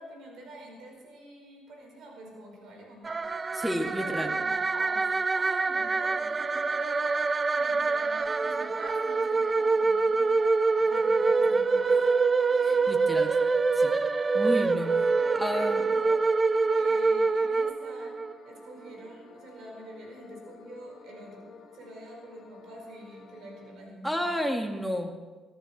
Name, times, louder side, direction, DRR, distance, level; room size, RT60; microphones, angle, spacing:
voice 1, 0.0-3.2 4.0-7.2 7.5-10.4 10.8-11.9 15.1-16.3 16.7-18.2 18.4-24.3, right 2 dB, 75° right, 0 dB, 4.6 m, -46 dB
sound 1, 3.0-18.3, right 4 dB, 30° right, 0.4 m, -25 dB
voice 2, 3.5-4.3 12.6-13.3 13.8-13.9 14.3-15.8 24.0-25.1, equal, 5° right, 3 dB, 2.1 m, -31 dB
sound 2, 6.6-23.7, left 4 dB, 60° left, 2.6 m, -51 dB
16.5 x 14.5 x 4.3 m, 1.4 s
supercardioid pair, 70°, 0 cm